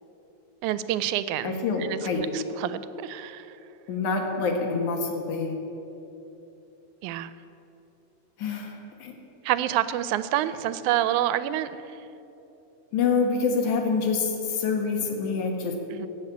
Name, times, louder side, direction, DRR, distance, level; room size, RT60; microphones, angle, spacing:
voice 1, 0.6-1.6 1.9-3.6 7.0-7.3 9.4-11.8 15.9-16.1, right 12 dB, 90° right, 14 dB, 2.0 m, -28 dB
voice 2, 1.4-2.2 3.9-5.5 8.4-9.1 12.9-15.7, left 4 dB, 85° left, 3 dB, 2.9 m, -26 dB
16.5 x 6.3 x 8.4 m, 3.0 s
omnidirectional pair, 3.4 m